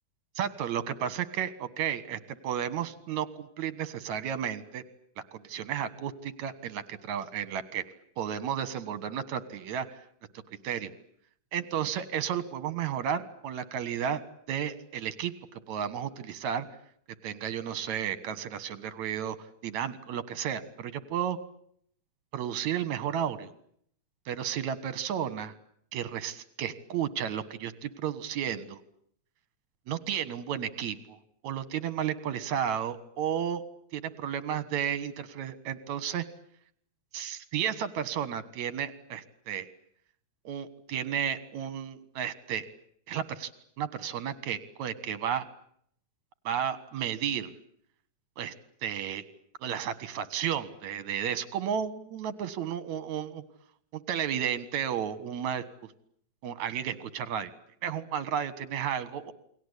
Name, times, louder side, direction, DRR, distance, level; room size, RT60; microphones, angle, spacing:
voice 1, 0.4-4.8 5.3-7.8 8.2-10.0 10.6-10.9 11.5-16.7 17.2-21.4 22.3-23.5 24.3-25.5 25.9-28.8 29.9-31.2 31.4-33.6 33.9-36.3 37.1-39.7 40.4-42.7 43.1-43.5 43.8-45.5 46.4-47.5 48.4-48.5 48.8-49.2 49.6-53.4 53.9-55.6 56.4-57.5 57.8-59.3, right 9 dB, 75° right, 14 dB, 2.8 m, -33 dB
29.5 x 22.0 x 8.2 m, 0.68 s
omnidirectional pair, 3.4 m